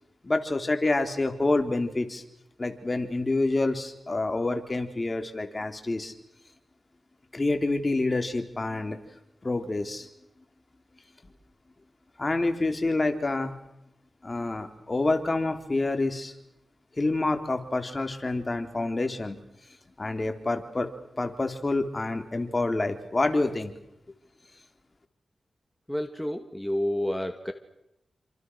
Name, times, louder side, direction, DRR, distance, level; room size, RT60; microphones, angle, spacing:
voice 1, 0.2-2.2 2.6-6.1 7.3-9.0 9.4-10.1 12.2-13.5 14.2-16.3 16.9-19.4 20.0-20.9 21.2-23.7, left 2 dB, 35° left, 6 dB, 3.7 m, -27 dB
voice 2, 25.9-27.5, left 1 dB, 5° left, 6 dB, 2.2 m, -29 dB
28.5 x 26.5 x 6.4 m, 0.86 s
cardioid pair, 50°, 0 cm